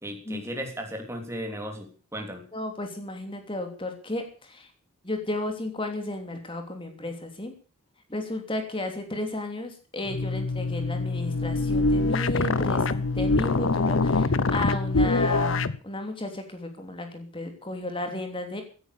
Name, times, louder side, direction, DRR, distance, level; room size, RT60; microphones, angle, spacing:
voice 1, 0.0-2.4, equal, 10° right, 3 dB, 3.2 m, -35 dB
voice 2, 2.5-4.7 5.0-7.5 8.1-18.6, left 1 dB, 25° left, 5 dB, 3.1 m, -33 dB
sound 1, 10.1-15.8, left 3 dB, 60° left, 0.8 m, -24 dB
17.0 x 10.0 x 6.7 m, 0.39 s
head